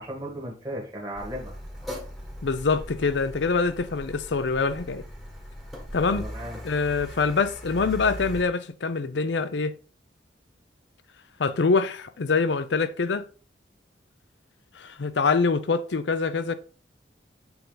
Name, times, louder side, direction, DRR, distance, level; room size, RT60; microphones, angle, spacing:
voice 1, 0.0-1.6 6.1-6.6, equal, 20° right, 1.6 m, -36 dB
Car, 1.2-8.4, equal, ahead, 1.3 m, -39 dB
voice 2, 2.4-5.0 5.9-6.2 6.6-9.7 11.4-13.2 14.8-16.5, left 4 dB, 75° left, 0.6 m, -25 dB
7.0 x 3.9 x 3.9 m
head